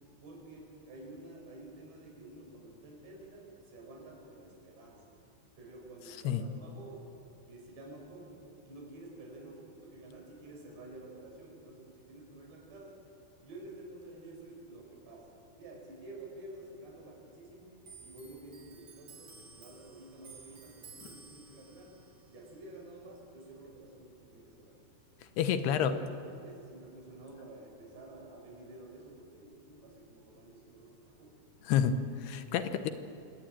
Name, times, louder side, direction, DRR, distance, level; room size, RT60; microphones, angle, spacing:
voice 1, 0.2-5.0 5.6-7.1 7.5-12.9 13.4-15.3 15.6-21.9 22.3-24.8 25.6-26.0 26.4-31.3, right 2 dB, 80° right, -1 dB, 7.8 m, -50 dB
Clock, 17.9-24.8 25.1-26.4 26.7-27.6, right 4 dB, 60° right, 4.8 m, -56 dB
voice 2, 25.4-25.9 31.6-32.9, left 8 dB, 75° left, 10 dB, 3.0 m, -29 dB
26.0 x 19.0 x 9.0 m, 2.5 s
omnidirectional pair, 4.8 m